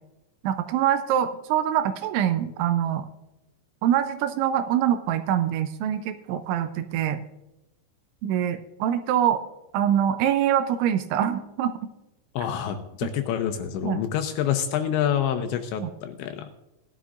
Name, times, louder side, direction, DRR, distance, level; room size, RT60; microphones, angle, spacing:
voice 1, 0.4-3.1 3.8-7.2 8.2-9.4 9.7-11.8 13.8-14.0 15.8-15.9, right 10 dB, 80° right, 9 dB, 2.8 m, -24 dB
voice 2, 12.3-16.5, left 9 dB, 80° left, 7 dB, 2.7 m, -27 dB
18.0 x 11.5 x 2.5 m, 0.97 s
omnidirectional pair, 5.7 m